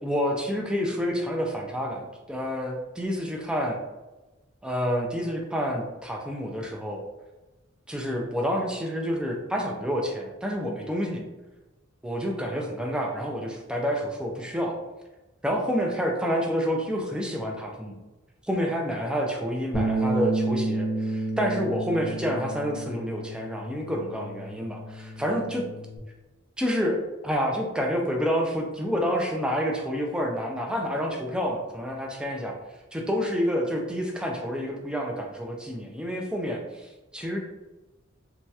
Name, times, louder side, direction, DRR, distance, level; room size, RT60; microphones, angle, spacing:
voice 1, 0.0-3.8 4.6-7.0 7.9-11.2 12.0-14.8 15.4-18.0 18.4-25.6 26.6-27.0 27.2-32.6 32.9-37.4, equal, 5° right, 0 dB, 0.4 m, -28 dB
Bass guitar, 19.7-26.0, right 2 dB, 45° left, 0.7 m, -31 dB
3.0 x 2.8 x 2.3 m, 1.1 s
head